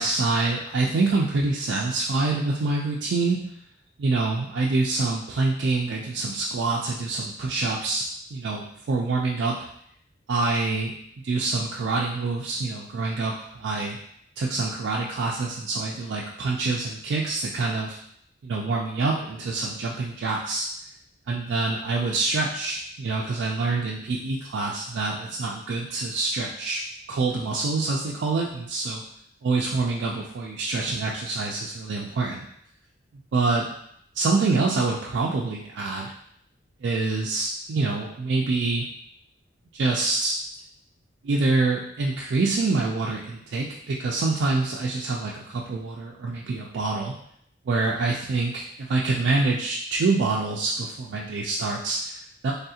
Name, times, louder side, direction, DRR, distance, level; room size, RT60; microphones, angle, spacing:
voice 1, 0.0-3.4 4.0-8.0 8.3-9.6 10.3-10.9 11.2-14.0 14.4-18.0 18.4-20.7 21.3-26.8 27.1-29.0 29.4-32.5 33.3-33.7 34.1-36.1 36.8-38.9 39.7-40.4 41.2-47.1 47.7-52.5, right 3 dB, 65° right, -3 dB, 0.4 m, -26 dB
3.4 x 2.3 x 2.7 m, 0.70 s
head